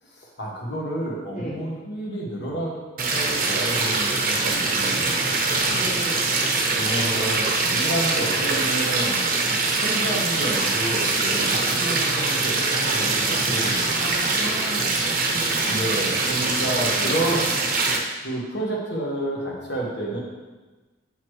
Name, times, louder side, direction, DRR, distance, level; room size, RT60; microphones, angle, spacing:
voice 1, 0.0-2.8 3.1-5.7 6.7-9.3 9.8-14.3 15.5-17.4 18.2-20.2, right 1 dB, 60° left, -3 dB, 1.5 m, -30 dB
Ambiance Water Pipe Short Loop Stereo, 3.0-18.0, right 3 dB, 50° right, 0.8 m, -23 dB
voice 2, 5.7-6.2 11.2-11.3 13.9-15.9 17.0-17.2, equal, 40° left, -6 dB, 1.0 m, -35 dB
7.7 x 5.7 x 3.2 m, 1.2 s
head